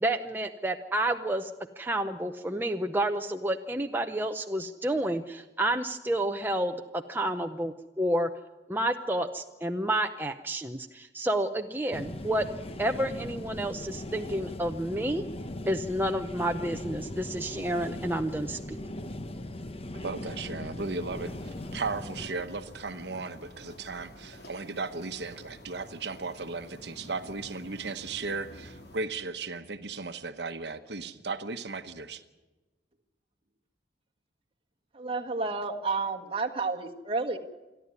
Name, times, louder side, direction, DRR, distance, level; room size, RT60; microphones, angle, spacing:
voice 1, 0.0-1.5 1.8-8.3 8.7-12.5 12.8-15.2 15.7-18.8, right 1 dB, 10° right, 5 dB, 0.7 m, -30 dB
sound 1, 11.9-22.3, left 1 dB, 35° left, 1.0 m, -39 dB
voice 2, 20.0-32.2, right 3 dB, 65° right, 9 dB, 1.0 m, -36 dB
sound 2, 20.8-29.0, left 1 dB, 60° left, 2.9 m, -49 dB
voice 3, 34.9-37.4, right 3 dB, 30° right, 2 dB, 1.6 m, -31 dB
28.0 x 11.0 x 9.6 m, 1.2 s
head